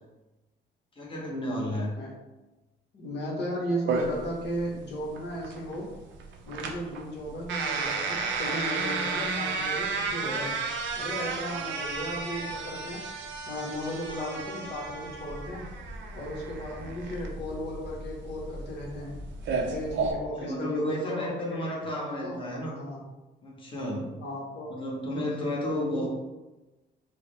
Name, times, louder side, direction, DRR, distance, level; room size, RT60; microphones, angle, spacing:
voice 1, 1.0-1.9 20.4-22.7 23.4-24.1 24.7-26.1, left 1 dB, 25° left, -3 dB, 1.1 m, -32 dB
voice 2, 2.9-5.9 6.5-10.5 10.9-13.0 13.5-15.7 16.1-19.1 19.7-21.6 21.9-22.4 22.8-23.0 24.2-24.7 25.7-26.1, equal, 60° left, -4 dB, 1.0 m, -35 dB
sound 1, 3.9-20.1, right 4 dB, 75° right, 0.6 m, -33 dB
sound 2, 15.2-20.3, left 1 dB, 10° right, 0.6 m, -43 dB
4.7 x 2.1 x 3.2 m, 1.1 s
cardioid pair, 90°, 20 cm